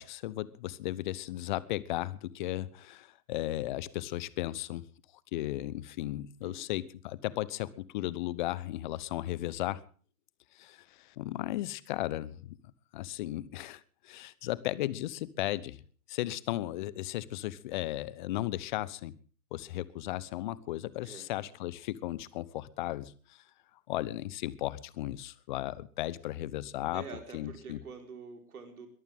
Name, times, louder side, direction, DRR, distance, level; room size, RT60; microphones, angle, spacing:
voice 1, 0.0-4.9 5.3-9.8 10.5-12.6 12.9-15.8 16.1-19.1 19.5-23.4 23.9-27.0 27.3-27.8, left 15 dB, 30° left, 1.0 m, -35 dB
voice 2, 26.9-28.9, right 5 dB, 70° right, 5.0 m, -46 dB
22.0 x 14.5 x 3.7 m
hypercardioid pair, 130°, 45 cm